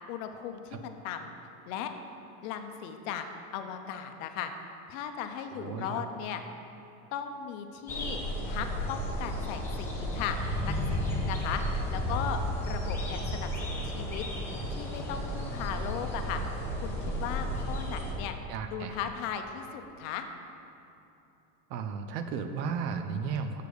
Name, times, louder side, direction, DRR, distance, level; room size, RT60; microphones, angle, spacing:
voice 1, 0.1-1.3 1.7-1.9 2.4-3.2 3.5-4.5 4.9-6.4 7.1-8.2 8.5-10.4 10.6-14.2 14.7-16.4 16.7-18.3 18.7-20.2, left 8 dB, 55° left, 6 dB, 0.7 m, -37 dB
voice 2, 5.5-6.0 18.5-19.0 21.7-23.6, right 6 dB, 80° right, 8 dB, 0.8 m, -34 dB
sound 1, 7.9-18.1, equal, 5° left, 0.7 m, -33 dB
6.7 x 5.1 x 6.4 m, 2.8 s
supercardioid pair, 160°, 48 cm